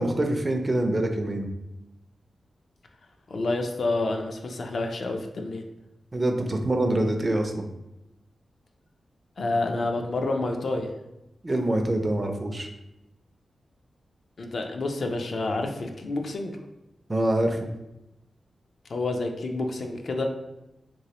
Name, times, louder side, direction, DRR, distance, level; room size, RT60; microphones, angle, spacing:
voice 1, 0.0-1.5 6.1-7.7 11.4-12.7 17.1-17.6, right 1 dB, 25° right, 4 dB, 0.4 m, -25 dB
voice 2, 3.3-5.6 9.4-10.9 14.4-16.6 18.9-20.2, left 2 dB, 60° left, 3 dB, 0.4 m, -28 dB
3.0 x 2.9 x 2.8 m, 0.92 s
wide cardioid pair, 115°, 0 cm